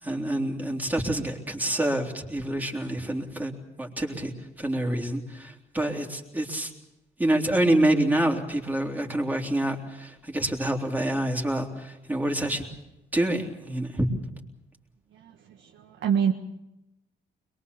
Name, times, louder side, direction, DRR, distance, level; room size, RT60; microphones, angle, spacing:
voice 1, 0.0-3.5 3.8-4.3 4.6-6.7 7.2-12.7 13.1-14.1, right 1 dB, 10° right, 1 dB, 3.6 m, -27 dB
voice 2, 15.1-16.3, right 8 dB, 75° right, 2 dB, 1.6 m, -27 dB
22.5 x 22.5 x 7.0 m, 0.92 s
cardioid pair, 90°, 20 cm